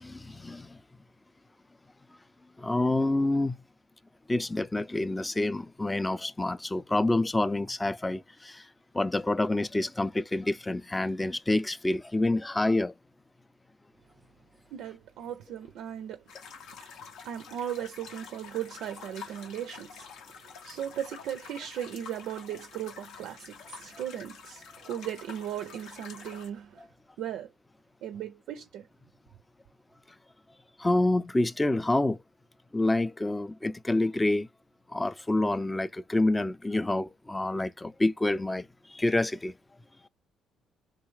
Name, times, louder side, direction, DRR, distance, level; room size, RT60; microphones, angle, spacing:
voice 1, 0.0-0.7 2.6-3.5 4.3-8.5 8.9-12.9 30.8-32.2 32.7-34.5 34.9-38.6 38.9-39.5, left 2 dB, 15° left, 0.4 m, -27 dB
voice 2, 14.7-16.2 17.2-20.1 20.3-26.8 27.2-27.5 28.0-28.9, right 10 dB, 65° right, 0.4 m, -37 dB
sound 1, 16.3-26.5, left 6 dB, 65° left, 0.6 m, -48 dB
2.8 x 2.2 x 3.1 m
hypercardioid pair, 50°, 0 cm